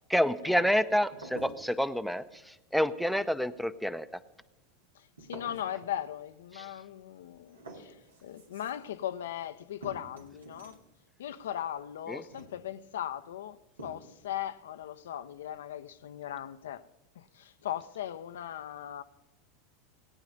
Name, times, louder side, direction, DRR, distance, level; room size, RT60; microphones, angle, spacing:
voice 1, 0.1-2.2 2.7-4.1 6.5-6.7 12.1-12.2, equal, ahead, 0.6 m, -28 dB
sound 1, 1.1-2.0 2.3-2.8 3.0-3.6 5.2-5.9 7.0-7.1 7.3-9.0 9.8-10.9 12.2-12.9 13.8-14.3, right 2 dB, 80° right, 1.8 m, -49 dB
voice 2, 5.3-8.0 8.2-10.8 11.2-16.8 17.2-19.0, left 11 dB, 70° left, 0.5 m, -38 dB
18.0 x 9.2 x 5.2 m
figure-of-eight pair, 85°, 0 cm